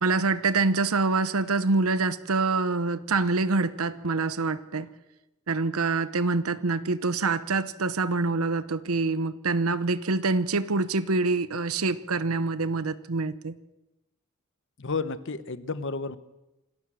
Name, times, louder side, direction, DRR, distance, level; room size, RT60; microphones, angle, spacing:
voice 1, 0.0-4.9 5.5-13.5, right 3 dB, 85° right, 14 dB, 0.9 m, -26 dB
voice 2, 14.8-16.2, left 4 dB, 60° left, 14 dB, 1.0 m, -31 dB
27.0 x 12.5 x 7.6 m, 0.97 s
head